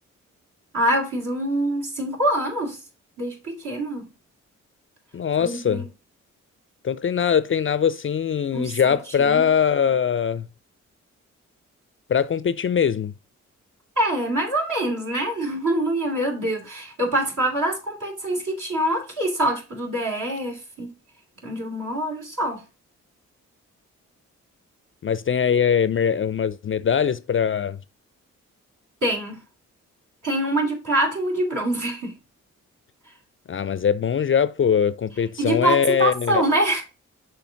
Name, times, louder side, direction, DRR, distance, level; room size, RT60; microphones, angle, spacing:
voice 1, 0.7-2.8 3.2-4.1 5.4-5.8 8.5-9.5 14.0-20.9 21.4-22.6 29.0-29.4 30.2-32.2 35.4-36.8, right 1 dB, 60° right, 3.0 m, -25 dB
voice 2, 5.1-5.8 6.8-10.5 12.1-13.1 25.0-27.8 33.5-36.4, left 7 dB, 40° left, 0.4 m, -22 dB
6.3 x 3.3 x 5.7 m
supercardioid pair, 40°, 34 cm